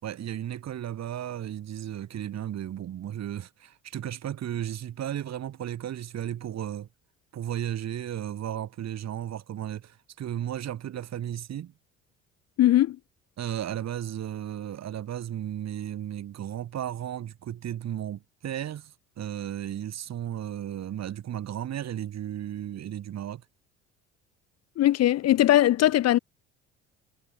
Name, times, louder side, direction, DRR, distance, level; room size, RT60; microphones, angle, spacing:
voice 1, 0.0-6.9 7.3-11.7 13.4-23.4, right 11 dB, 45° right, 4.2 m, -34 dB
voice 2, 12.6-13.0 24.8-26.2, left 13 dB, 45° left, 1.1 m, -20 dB
figure-of-eight pair, 55°, 36 cm